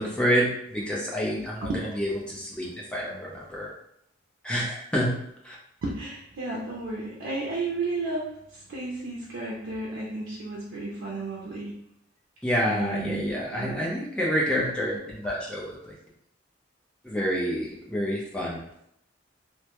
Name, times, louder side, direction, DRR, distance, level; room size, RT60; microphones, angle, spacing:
voice 1, 0.0-1.7 2.0-2.7 2.9-3.7 4.4-5.1 5.5-5.6 12.4-15.9 17.0-18.6, equal, 5° left, -5 dB, 0.5 m, -28 dB
voice 2, 5.8-11.7 12.6-13.8 15.0-15.1, right 2 dB, 85° right, -4 dB, 0.5 m, -33 dB
2.2 x 2.1 x 2.9 m, 0.74 s
head